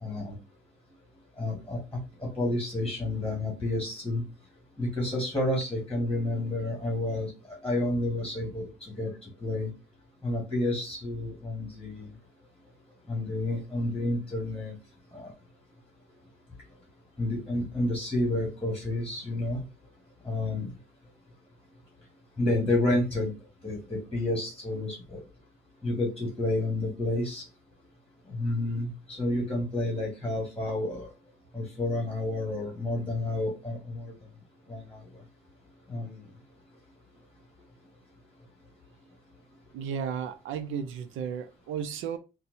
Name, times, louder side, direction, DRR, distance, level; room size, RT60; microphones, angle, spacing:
voice 1, 0.0-0.3 1.4-1.8 2.2-4.2 4.8-9.1 9.4-9.7 10.2-12.1 13.1-14.7 15.1-15.3 17.2-19.6 20.2-20.7 22.4-23.3 23.6-25.2 25.8-27.4 28.3-31.1 31.5-34.1 34.7-35.0 35.9-36.2, left 1 dB, 5° left, 1.5 m, -30 dB
voice 2, 39.7-42.2, right 7 dB, 85° right, 0.5 m, -34 dB
4.2 x 2.2 x 2.6 m
cardioid pair, 90°, 20 cm